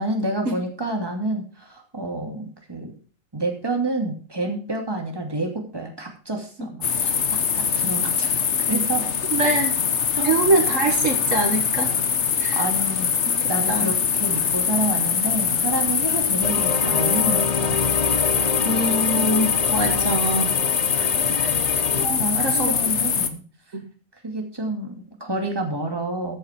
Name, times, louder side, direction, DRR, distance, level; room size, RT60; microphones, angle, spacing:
voice 1, 0.0-2.9 3.3-7.1 7.5-9.1 10.1-10.3 12.5-13.1 13.5-18.0 20.9-21.5 22.2-23.4 24.2-26.4, right 2 dB, 15° right, 2 dB, 2.6 m, -29 dB
sound 1, 6.8-23.3, left 7 dB, 55° left, 1.3 m, -23 dB
voice 2, 9.3-9.7 10.2-11.9 12.4-12.6 13.4-13.9 18.6-20.6 21.2-21.5 22.0-22.8 23.7-23.8, right 2 dB, 65° right, 4 dB, 2.1 m, -24 dB
sound 2, 16.4-22.1, left 5 dB, 40° left, 0.6 m, -28 dB
13.5 x 9.0 x 4.4 m, 0.39 s
omnidirectional pair, 1.4 m